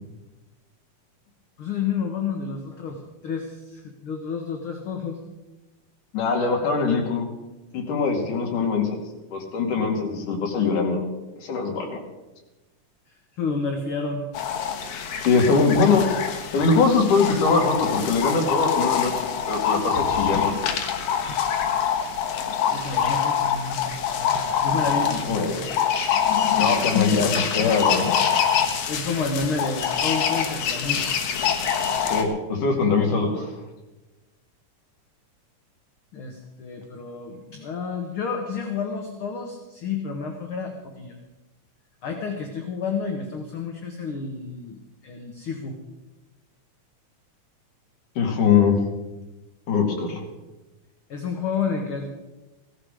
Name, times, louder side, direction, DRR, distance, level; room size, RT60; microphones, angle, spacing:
voice 1, 1.6-5.2 13.3-14.2 21.3-21.4 22.6-25.7 26.9-27.1 28.9-31.0 36.1-41.2 42.0-45.8 51.1-52.1, left 5 dB, 55° left, 3 dB, 1.7 m, -30 dB
voice 2, 6.1-7.3 7.7-8.9 9.3-11.0 11.4-12.0 15.2-16.0 16.5-20.6 25.3-25.7 26.6-28.2 32.1-33.5 48.2-48.8 49.7-50.2, left 4 dB, 70° left, 1 dB, 3.9 m, -22 dB
sound 1, 14.4-32.2, left 8 dB, 90° left, 2.9 m, -25 dB
16.0 x 13.5 x 5.0 m, 1.1 s
omnidirectional pair, 3.8 m